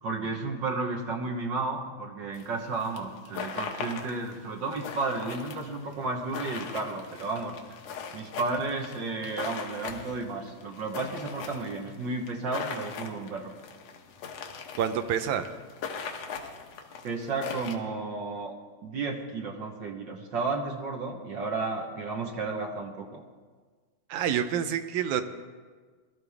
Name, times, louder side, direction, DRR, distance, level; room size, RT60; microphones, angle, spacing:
voice 1, 0.0-7.5 8.1-13.5 17.0-18.5 18.8-23.2, right 3 dB, 55° right, 1 dB, 1.3 m, -33 dB
sound 1, 2.3-17.8, left 6 dB, 65° left, 2.1 m, -40 dB
voice 2, 14.8-15.5 24.1-25.2, right 9 dB, 75° right, 9 dB, 2.1 m, -27 dB
21.5 x 13.0 x 3.6 m, 1.5 s
omnidirectional pair, 3.5 m